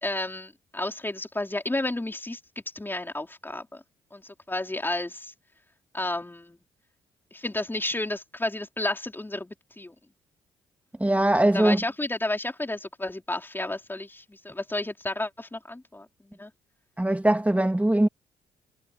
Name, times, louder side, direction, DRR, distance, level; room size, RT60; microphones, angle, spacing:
voice 1, 0.0-2.4 2.7-3.8 4.1-5.3 5.9-6.6 7.3-9.9 11.4-16.5, left 2 dB, 15° left, 4.7 m, -32 dB
voice 2, 11.0-11.8 17.0-18.1, right 1 dB, 10° right, 2.8 m, -21 dB
hypercardioid pair, 45°, 15 cm